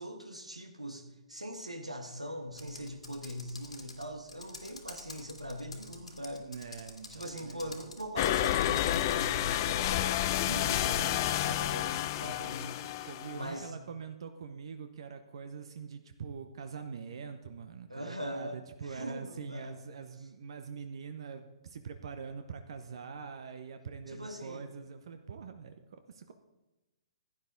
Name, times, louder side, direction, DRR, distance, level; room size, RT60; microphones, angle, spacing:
voice 1, 0.0-6.5 7.1-12.9 13.3-13.7 17.9-19.8 24.1-24.7, equal, 85° right, 4 dB, 1.6 m, -41 dB
Computer keyboard, 2.5-9.3, left 3 dB, 75° left, 2.4 m, -49 dB
voice 2, 6.3-7.8 10.9-11.2 13.1-26.3, right 6 dB, 50° right, 8 dB, 0.9 m, -44 dB
sound 1, 8.2-13.7, left 13 dB, 35° left, 0.5 m, -30 dB
16.0 x 10.0 x 3.9 m, 1.0 s
figure-of-eight pair, 125°, 3 cm